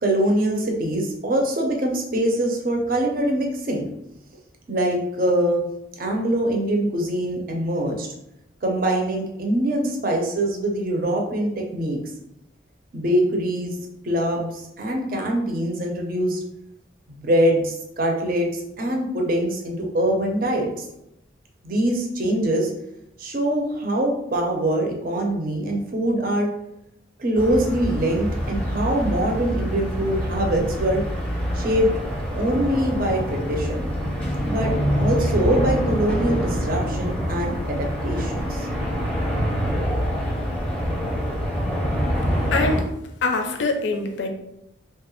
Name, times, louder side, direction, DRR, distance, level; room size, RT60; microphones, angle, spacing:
voice 1, 0.0-3.9 4.7-5.6 6.0-8.1 8.6-12.0 12.9-16.4 17.1-20.7 21.6-22.7 23.2-26.5 27.2-31.0 31.5-31.9 32.3-33.9 34.4-38.7, right 1 dB, 45° right, 1 dB, 0.6 m, -23 dB
sound 1, 27.4-42.8, equal, 5° left, 0.7 m, -25 dB
voice 2, 42.5-42.9 43.2-44.3, left 3 dB, 70° left, 4 dB, 0.4 m, -23 dB
3.0 x 2.3 x 3.0 m, 0.82 s
head